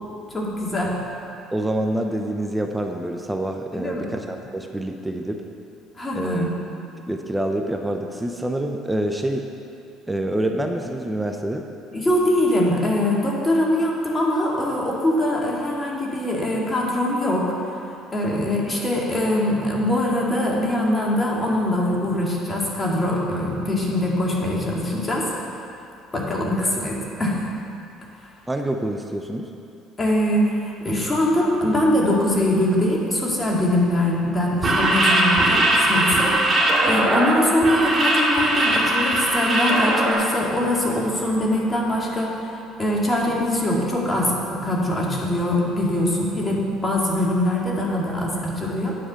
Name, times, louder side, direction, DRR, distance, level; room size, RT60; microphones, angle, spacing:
voice 1, 0.3-1.0 3.7-4.1 6.0-6.5 11.9-17.5 18.1-25.3 26.1-27.4 30.0-36.4 36.8-49.0, left 1 dB, 20° left, -3 dB, 2.1 m, -22 dB
voice 2, 1.5-5.4 6.1-6.5 7.1-9.5 10.1-11.7 28.5-29.5, right 1 dB, 10° right, 4 dB, 0.7 m, -26 dB
sound 1, 34.5-40.1, right 1 dB, 30° right, 2.2 m, -20 dB
9.6 x 4.9 x 7.6 m, 2.6 s
supercardioid pair, 85°, 0 cm